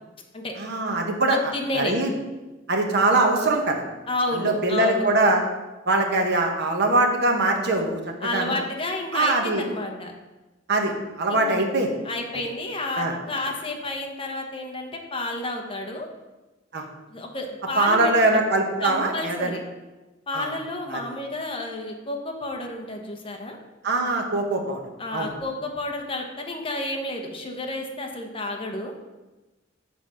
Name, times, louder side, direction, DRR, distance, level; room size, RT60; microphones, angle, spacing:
voice 1, 0.6-1.4 1.7-2.1 2.7-3.8 4.4-5.4 5.8-8.0 8.3-8.6 9.1-9.7 10.7-11.9 13.0-13.1 16.7-16.8 17.8-19.6 20.3-20.5 20.9-21.0 23.8-24.8 25.1-25.3, right 2 dB, 55° right, 2 dB, 1.2 m, -22 dB
voice 2, 1.3-2.0 4.1-5.1 8.2-10.1 11.3-11.7 12.0-16.1 17.1-18.1 18.8-19.6 20.3-23.6 25.0-28.9, left 2 dB, 25° left, 2 dB, 1.0 m, -30 dB
7.0 x 4.1 x 6.3 m, 1.1 s
head